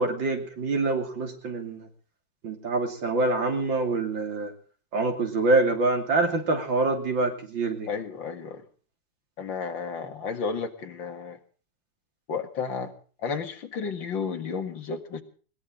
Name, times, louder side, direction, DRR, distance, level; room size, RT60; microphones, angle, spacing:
voice 1, 0.0-1.8 2.4-4.5 4.9-7.9, right 3 dB, 80° right, 3 dB, 3.4 m, -25 dB
voice 2, 7.9-8.6 9.4-11.4 12.3-12.9 13.2-15.2, left 5 dB, 80° left, 5 dB, 2.5 m, -32 dB
20.5 x 18.0 x 3.8 m, 0.41 s
omnidirectional pair, 2.0 m